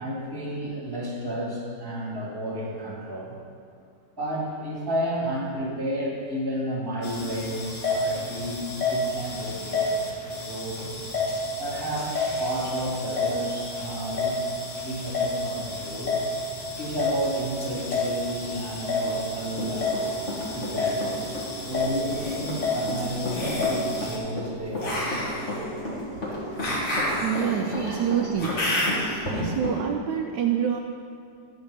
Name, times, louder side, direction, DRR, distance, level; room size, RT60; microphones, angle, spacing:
voice 1, 0.0-3.4 4.2-10.1 10.5-10.9 11.6-14.4 14.8-16.1 16.8-20.0 20.5-21.4 21.7-25.7 27.7-28.1 28.4-28.7 29.2-29.5, right 1 dB, 10° right, -5 dB, 2.1 m, -32 dB
sound 1, 7.0-24.2, left 2 dB, 60° left, 2.1 m, -30 dB
Run, 19.1-20.7 21.0-29.8, left 1 dB, 40° left, 2.1 m, -33 dB
sound 2, 21.9-22.4 23.2-23.8 24.8-29.2, left 1 dB, 90° left, 3.2 m, -29 dB
voice 2, 27.2-28.5 29.4-30.8, right 8 dB, 75° right, 3 dB, 1.2 m, -26 dB
11.0 x 5.3 x 6.6 m, 2.3 s
omnidirectional pair, 2.0 m